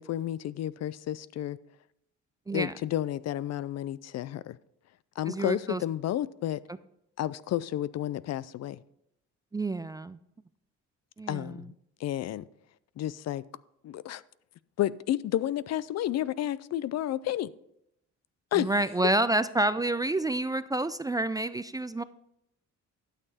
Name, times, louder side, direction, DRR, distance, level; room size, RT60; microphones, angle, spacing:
voice 1, 0.0-1.6 2.5-4.6 5.2-6.6 7.2-8.8 11.3-11.7 12.0-12.5 13.0-13.4 13.8-14.2 14.8-17.5 18.5-18.7, left 12 dB, 60° left, 0.4 m, -31 dB
voice 2, 5.3-5.8 9.5-10.2 11.2-11.7 18.5-22.0, right 2 dB, 15° right, 0.3 m, -29 dB
12.0 x 6.7 x 4.2 m
cardioid pair, 90°, 30 cm